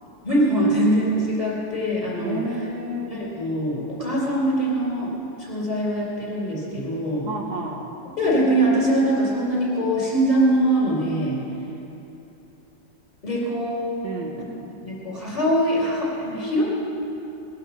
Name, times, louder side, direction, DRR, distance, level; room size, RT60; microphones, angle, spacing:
voice 1, 0.2-2.4 3.1-5.1 5.4-7.3 8.2-11.4 13.2-13.8 14.8-16.6, right 1 dB, 20° left, -6 dB, 4.7 m, -22 dB
voice 2, 2.2-3.1 7.3-7.9 14.0-14.5, right 1 dB, 60° right, -1 dB, 1.8 m, -31 dB
21.0 x 11.0 x 5.7 m, 3.0 s
omnidirectional pair, 2.0 m